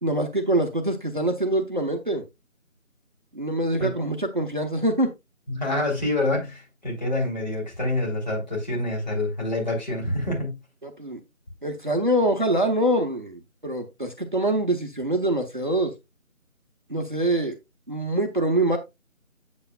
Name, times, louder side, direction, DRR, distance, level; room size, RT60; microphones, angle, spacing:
voice 1, 0.0-2.2 3.3-5.1 10.8-11.2 11.6-15.9 16.9-17.6 17.9-18.8, right 1 dB, 35° right, 0.9 m, -24 dB
voice 2, 5.5-10.6, left 1 dB, 35° left, 3.3 m, -27 dB
8.3 x 8.1 x 2.3 m
figure-of-eight pair, 165°, 41 cm